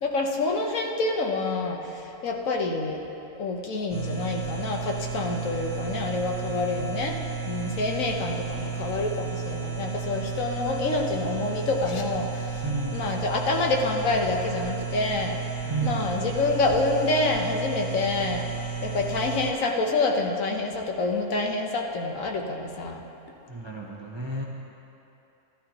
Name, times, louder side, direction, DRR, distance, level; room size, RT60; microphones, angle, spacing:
voice 1, 0.0-3.0 3.3-7.2 7.5-12.6 12.9-15.4 15.8-18.5 18.8-23.0, left 3 dB, 65° left, 1 dB, 1.3 m, -27 dB
sound 1, 3.9-19.5, right 6 dB, 25° left, 2.6 m, -33 dB
voice 2, 12.6-13.1 15.7-16.1 23.5-24.4, right 3 dB, 30° right, -2 dB, 0.5 m, -31 dB
14.5 x 12.0 x 2.9 m, 2.9 s
omnidirectional pair, 1.6 m